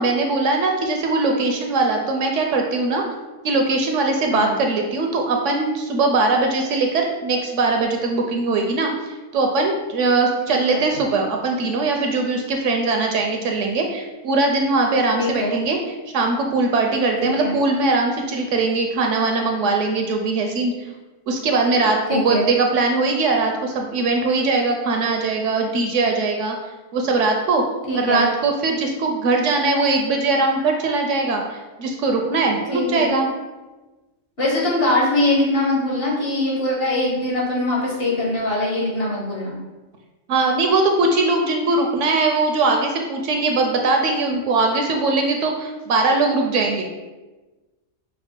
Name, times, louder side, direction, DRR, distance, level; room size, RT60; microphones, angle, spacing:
voice 1, 0.0-3.1 3.4-15.8 16.1-20.7 21.3-26.6 26.9-33.3 40.3-46.8, right 3 dB, 70° right, 2 dB, 0.8 m, -21 dB
voice 2, 10.5-10.8 15.2-15.5 17.2-17.6 22.1-22.4 27.9-28.2 32.7-33.1 34.4-39.6, left 2 dB, 50° left, -4 dB, 1.3 m, -22 dB
5.2 x 2.1 x 4.3 m, 1.2 s
omnidirectional pair, 1.4 m